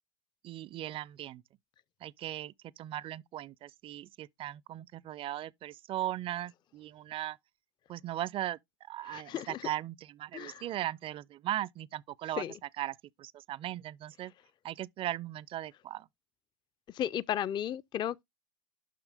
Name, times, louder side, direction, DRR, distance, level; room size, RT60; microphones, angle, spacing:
voice 1, 0.4-1.4 2.0-7.4 7.9-12.4 12.8-14.3 14.6-16.1, right 13 dB, 35° right, 0.4 m, -38 dB
voice 2, 9.0-9.6 10.3-10.6 12.4-12.5 16.9-18.2, left 10 dB, 30° left, 0.4 m, -34 dB
7.4 x 5.8 x 3.4 m
hypercardioid pair, 90°, 16 cm